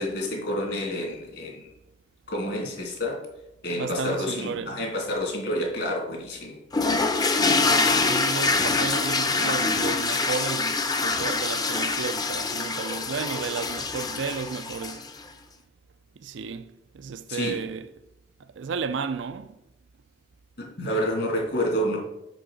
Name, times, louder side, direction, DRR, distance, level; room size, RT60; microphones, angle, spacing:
voice 1, 0.0-1.7 2.3-3.2 3.6-6.6 17.3-17.6 20.6-22.0, equal, 65° left, 2.6 m, -29 dB
voice 2, 3.8-4.8 7.4-15.0 16.2-16.7 16.9-17.9 18.6-19.5, right 5 dB, 75° right, 0.4 m, -33 dB
sound 1, 6.7-15.2, left 3 dB, 20° left, 0.6 m, -25 dB
6.1 x 5.8 x 6.2 m
head